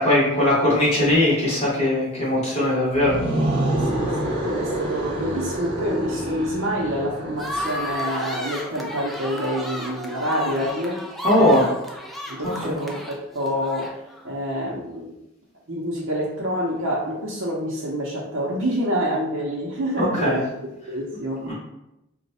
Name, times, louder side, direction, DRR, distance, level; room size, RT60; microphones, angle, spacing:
voice 1, 0.0-3.2 11.2-11.7 12.4-12.7 20.0-20.4 21.4-21.5, left 1 dB, 30° left, -8 dB, 1.3 m, -20 dB
sound 1, 2.9-8.0, right 1 dB, 25° right, 1.0 m, -27 dB
voice 2, 3.9-11.0 11.4-11.6 12.3-13.9 14.2-15.1 15.7-20.4 20.9-21.5, equal, 75° right, -5 dB, 0.7 m, -27 dB
sound 2, 7.4-14.3, left 1 dB, ahead, 0.4 m, -33 dB
3.1 x 2.2 x 4.1 m, 0.91 s
head